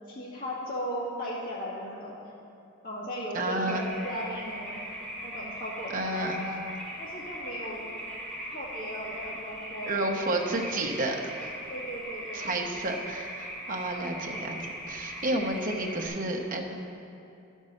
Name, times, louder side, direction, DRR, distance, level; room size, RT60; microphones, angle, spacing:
voice 1, 0.1-2.2 2.8-4.9 5.2-6.6 7.0-7.8 8.5-10.4 11.7-12.6, equal, 45° left, -7 dB, 2.0 m, -37 dB
voice 2, 3.3-3.9 5.9-6.4 9.9-11.4 12.3-16.7, right 1 dB, 40° right, 2 dB, 0.9 m, -31 dB
sound 1, 3.7-16.1, equal, 5° left, 2.3 m, -40 dB
11.0 x 5.4 x 6.5 m, 2.7 s
head